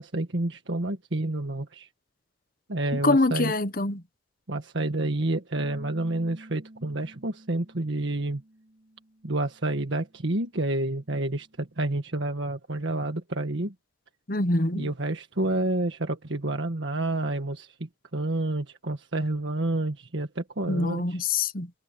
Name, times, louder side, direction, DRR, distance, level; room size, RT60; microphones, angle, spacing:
voice 1, 0.0-1.9 2.7-3.5 4.5-8.4 9.2-13.7 14.7-21.2, right 2 dB, 70° right, 1.6 m, -29 dB
voice 2, 3.0-4.0 14.3-14.9 20.7-21.7, left 2 dB, 45° left, 1.2 m, -24 dB
Bass guitar, 5.6-11.8, right 1 dB, 45° right, 6.5 m, -51 dB
head